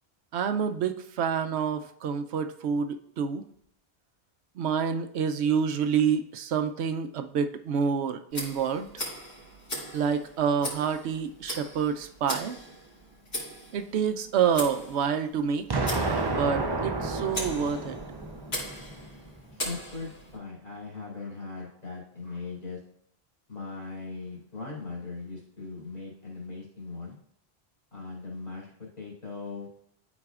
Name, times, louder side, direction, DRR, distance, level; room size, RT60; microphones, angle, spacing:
voice 1, 0.3-3.4 4.6-8.9 9.9-12.5 13.7-15.7 16.3-18.0, right 7 dB, 85° right, 8 dB, 0.9 m, -28 dB
Tick, 8.3-20.4, left 1 dB, 70° left, 2.5 m, -40 dB
Explosion, 15.7-18.7, right 3 dB, 40° right, 0.4 m, -30 dB
sound 1, 15.9-20.4, equal, 5° left, 0.6 m, -41 dB
voice 2, 19.5-22.8 23.5-27.2 27.9-29.7, left 4 dB, 40° left, -5 dB, 2.7 m, -39 dB
12.0 x 4.2 x 2.4 m, 0.71 s
omnidirectional pair, 1.1 m